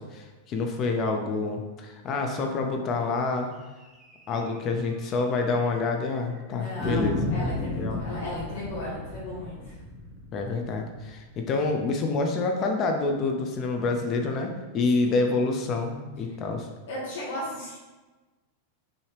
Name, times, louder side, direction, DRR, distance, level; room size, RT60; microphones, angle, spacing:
voice 1, 0.0-3.5 4.3-7.2 7.8-8.2 10.3-16.7, left 3 dB, 30° left, 3 dB, 0.5 m, -27 dB
sound 1, 4.0-4.2 4.5-4.6 4.9-5.0 5.6-6.1 6.8-11.6, left 1 dB, 10° right, 0.9 m, -33 dB
voice 2, 6.5-9.7 15.0-15.3 16.9-17.7, left 1 dB, 90° left, -9 dB, 1.4 m, -36 dB
5.6 x 2.8 x 3.3 m, 1.2 s
supercardioid pair, 150°, 0 cm